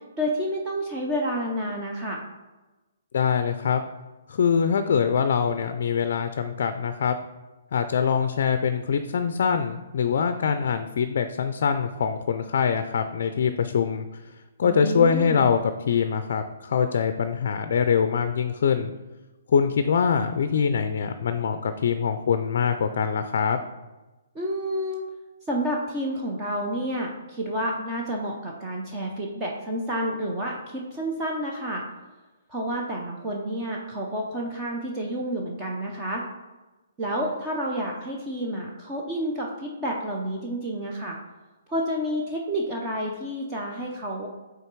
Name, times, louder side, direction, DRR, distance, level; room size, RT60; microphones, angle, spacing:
voice 1, 0.2-2.2 14.6-15.5 24.3-25.1 25.5-31.8 32.5-36.3 37.0-41.2 41.7-44.3, equal, 15° right, -2 dB, 0.6 m, -29 dB
voice 2, 3.1-3.8 4.3-7.1 7.7-14.2 14.6-18.9 19.5-23.6, left 6 dB, 50° left, 9 dB, 0.4 m, -24 dB
5.6 x 3.8 x 4.6 m, 1.1 s
hypercardioid pair, 170°, 0 cm